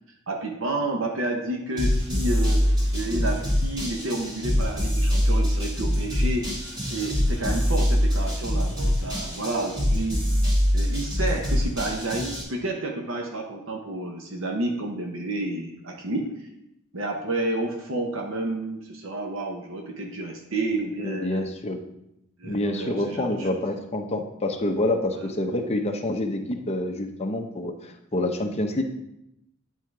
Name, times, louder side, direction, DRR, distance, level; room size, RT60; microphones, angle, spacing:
voice 1, 0.3-2.6 2.9-6.5 6.8-10.2 10.7-16.5 16.9-21.4 22.4-23.5 25.2-25.3, right 2 dB, 65° right, 2 dB, 0.9 m, -30 dB
sound 1, 1.8-12.4, equal, 20° right, 2.1 m, -24 dB
voice 2, 21.0-21.8 22.4-28.8, left 1 dB, 30° left, 3 dB, 0.8 m, -27 dB
9.5 x 3.7 x 4.7 m, 0.82 s
head